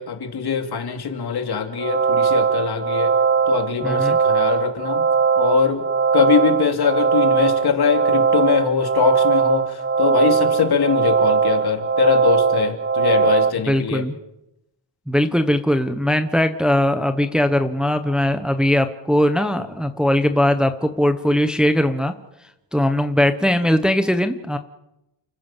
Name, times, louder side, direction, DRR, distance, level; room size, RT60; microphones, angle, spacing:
voice 1, 0.0-3.2 3.5-5.1 5.4-5.8 6.1-14.1, left 6 dB, 60° left, 5 dB, 2.9 m, -22 dB
sound 1, 1.7-13.5, right 6 dB, 30° right, 0.8 m, -19 dB
voice 2, 3.8-4.2 13.7-14.1 15.1-22.1 22.7-24.6, left 1 dB, ahead, 8 dB, 1.0 m, -20 dB
29.5 x 15.5 x 7.4 m, 0.88 s
wide cardioid pair, 170°, 43 cm